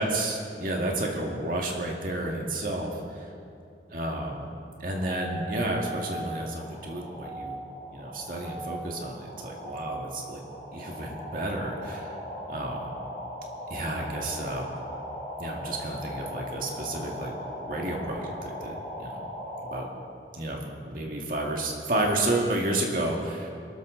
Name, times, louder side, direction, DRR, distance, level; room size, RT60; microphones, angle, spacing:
voice 1, 0.0-3.3 3.9-4.5 4.8-7.6 7.9-10.4 10.7-12.1 12.5-12.9 13.7-14.7 15.4-19.3 19.6-19.9 20.3-23.5, right 1 dB, 50° right, 0 dB, 2.2 m, -31 dB
sound 1, 4.9-19.8, equal, 15° left, 3.9 m, -39 dB
22.0 x 13.0 x 4.0 m, 2.6 s
head